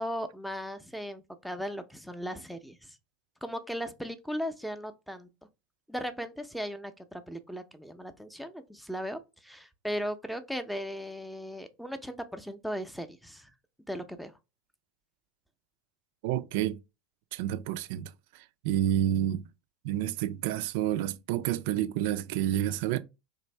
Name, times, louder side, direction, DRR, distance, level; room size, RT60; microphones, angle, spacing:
voice 1, 0.0-3.0 3.4-5.3 5.9-13.5 13.9-14.3, equal, ahead, 0.5 m, -37 dB
voice 2, 16.2-16.8 17.3-19.4 19.8-23.0, right 11 dB, 65° right, 0.3 m, -29 dB
3.3 x 2.6 x 3.2 m
hypercardioid pair, 85°, 0 cm